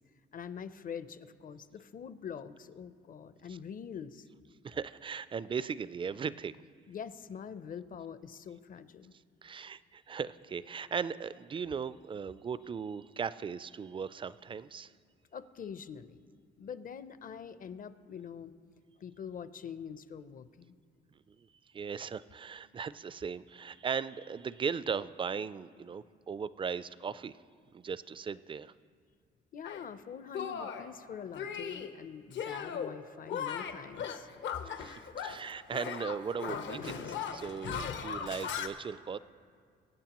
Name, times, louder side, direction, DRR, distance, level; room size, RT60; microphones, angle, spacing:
voice 1, 0.3-4.3 6.9-9.1 15.3-16.2 16.6-18.5 19.0-20.8 29.5-34.3, left 7 dB, 45° left, 14 dB, 0.6 m, -44 dB
voice 2, 4.6-6.6 9.4-14.9 21.3-21.5 21.7-27.4 27.7-28.7 34.8-39.2, right 6 dB, 25° right, 17 dB, 0.3 m, -38 dB
Shatter, 29.6-29.8 30.3-30.9 31.4-31.9 32.3-32.9 33.3-35.5 35.7-38.7, left 7 dB, 70° left, 0.8 m, -38 dB
24.0 x 8.9 x 3.0 m, 2.1 s
cardioid pair, 90°, 20 cm